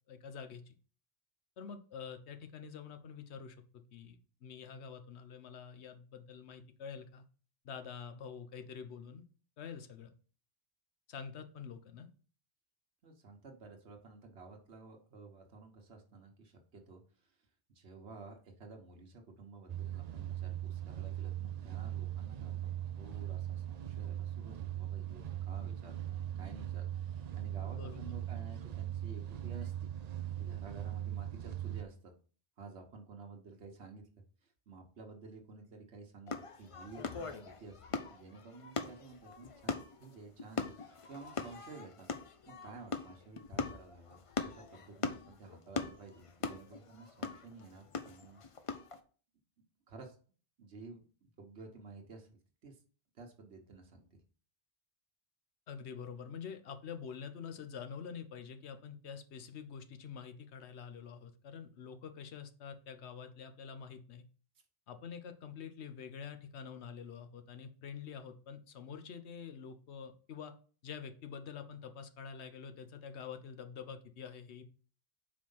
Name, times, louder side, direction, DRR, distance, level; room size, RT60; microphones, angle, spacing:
voice 1, 0.1-0.8 1.6-7.2 7.6-9.2 9.6-10.1 11.1-12.1 27.7-28.1 55.7-64.2 64.9-70.5 70.8-74.6, left 6 dB, 90° left, 8 dB, 1.1 m, -47 dB
voice 2, 13.0-17.4 17.7-22.7 23.0-29.9 30.4-32.1 32.6-34.0 34.4-48.4 49.9-50.2 50.6-52.8 53.1-54.2, right 4 dB, 85° right, 2 dB, 1.4 m, -52 dB
sound 1, 19.7-31.8, right 11 dB, 55° right, 0.5 m, -40 dB
sound 2, 36.3-49.0, left 5 dB, 40° left, 0.5 m, -41 dB
4.9 x 4.4 x 5.4 m, 0.40 s
omnidirectional pair, 1.1 m